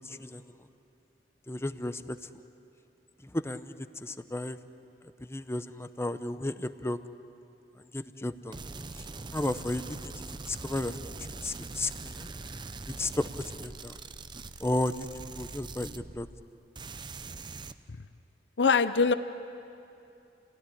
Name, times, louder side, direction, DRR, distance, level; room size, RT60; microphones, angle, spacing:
voice 1, 0.0-0.4 1.5-2.2 3.2-3.7 4.0-4.6 5.2-7.0 7.9-8.6 9.3-11.0 11.4-12.3 13.0-14.0 14.6-16.3, left 1 dB, 15° left, 11 dB, 0.7 m, -33 dB
sound 1, 8.5-16.5 16.8-17.7, right 3 dB, 25° right, 0.6 m, -42 dB
voice 2, 18.6-19.1, left 5 dB, 80° left, 12 dB, 0.7 m, -22 dB
29.5 x 17.0 x 9.9 m, 2.7 s
head